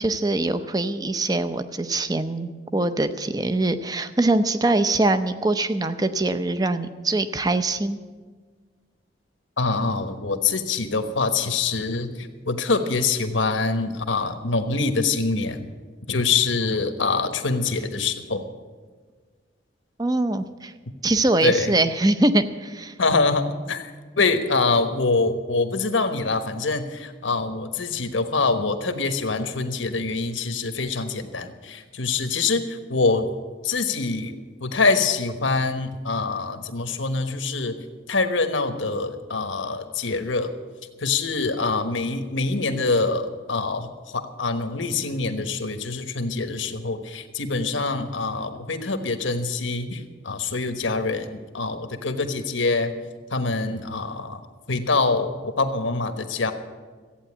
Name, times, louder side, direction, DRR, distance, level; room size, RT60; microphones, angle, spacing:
voice 1, 0.0-8.0 20.0-20.7 21.0-22.9, right 2 dB, 20° right, 11 dB, 0.6 m, -23 dB
voice 2, 9.6-15.7 16.1-18.4 21.4-21.7 23.0-23.8 24.2-33.3 33.6-34.3 34.6-37.8 38.1-40.5 41.0-52.9 53.3-54.4 54.7-56.5, left 3 dB, 85° left, 7 dB, 1.3 m, -25 dB
14.5 x 9.0 x 8.7 m, 1.5 s
head